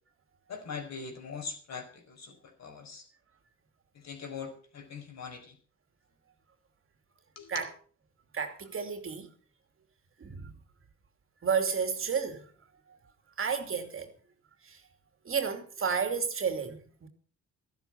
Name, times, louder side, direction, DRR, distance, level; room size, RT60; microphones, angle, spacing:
voice 1, 0.5-3.0 3.9-5.5 7.3-7.7, left 5 dB, 60° left, 5.1 m, -42 dB
voice 2, 8.3-9.3 10.2-10.5 11.4-12.5 12.9-13.0 13.4-14.1 14.6-14.8 15.2-17.1, right 6 dB, 45° right, 2.7 m, -32 dB
13.5 x 12.0 x 5.7 m
cardioid pair, 90°, 30 cm